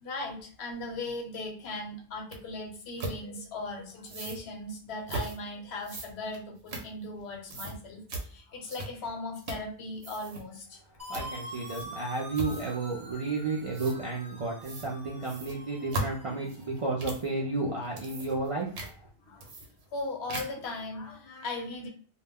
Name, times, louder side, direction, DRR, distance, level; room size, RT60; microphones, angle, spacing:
voice 1, 0.0-10.8 19.2-19.5 19.9-21.9, left 2 dB, 75° left, 1 dB, 1.0 m, -38 dB
sound 1, 2.3-2.4 3.0-3.2 4.0-4.4 5.1-5.4 5.8-7.2 7.5-7.8 8.1-8.3 8.7-9.1 9.4-9.7 10.0-10.4 11.1-11.3 11.6-12.0 12.3-12.8 13.7-14.0 14.6-14.9 15.2-17.3 17.8-18.5 18.8-18.9 19.4-20.0 20.3-20.7, right 2 dB, 90° right, 0.9 m, -38 dB
sound 2, 11.0-16.8, equal, 25° right, 0.8 m, -46 dB
voice 2, 11.1-18.7, right 3 dB, 50° right, -3 dB, 0.4 m, -32 dB
2.2 x 2.1 x 3.4 m, 0.43 s
omnidirectional pair, 1.1 m